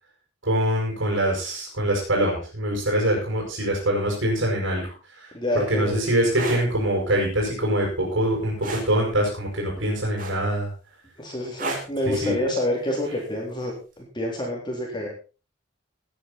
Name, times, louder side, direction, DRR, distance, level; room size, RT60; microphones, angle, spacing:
voice 1, 0.4-4.8 5.2-5.3 5.7-10.7 12.2-12.3, right 1 dB, 75° right, -2 dB, 6.9 m, -24 dB
voice 2, 5.3-6.0 11.2-15.1, left 1 dB, 25° left, -1 dB, 3.9 m, -28 dB
sound 1, 6.4-6.6 8.6-8.9 10.2-10.6 11.6-11.9 13.3-13.5, right 3 dB, 45° right, 4.6 m, -31 dB
19.0 x 10.0 x 4.3 m, 0.32 s
head